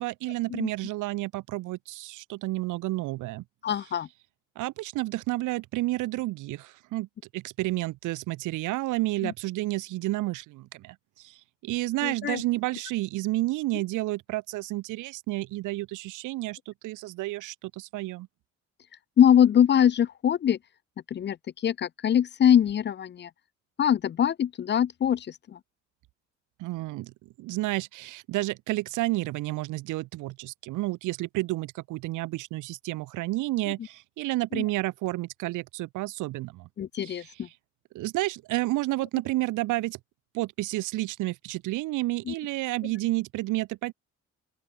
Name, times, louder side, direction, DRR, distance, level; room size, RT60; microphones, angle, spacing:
voice 1, 0.0-3.4 4.6-7.1 7.3-11.4 11.6-18.3 26.6-27.1 27.4-36.7 37.0-37.5 37.9-40.0 40.3-43.9, right 18 dB, 85° right, 0.6 m, -30 dB
voice 2, 3.6-4.1 9.2-9.3 12.0-12.4 19.2-20.6 21.1-21.4 21.6-23.3 23.8-25.3 34.5-34.6 36.8-37.5 42.3-42.4, left 9 dB, 35° left, 0.4 m, -23 dB
open air
cardioid pair, 90°, 30 cm